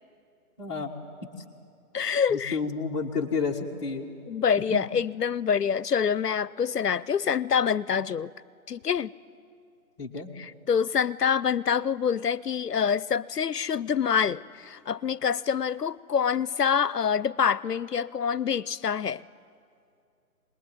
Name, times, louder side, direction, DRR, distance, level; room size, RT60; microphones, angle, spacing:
voice 1, 0.6-0.9 2.3-4.1 4.7-4.8 10.0-10.3, left 4 dB, 20° left, -2 dB, 1.5 m, -30 dB
voice 2, 1.9-2.6 4.3-8.3 8.7-9.1 10.4-19.2, left 7 dB, 90° left, 21 dB, 0.7 m, -26 dB
24.0 x 20.0 x 9.3 m, 2.4 s
figure-of-eight pair, 155°, 46 cm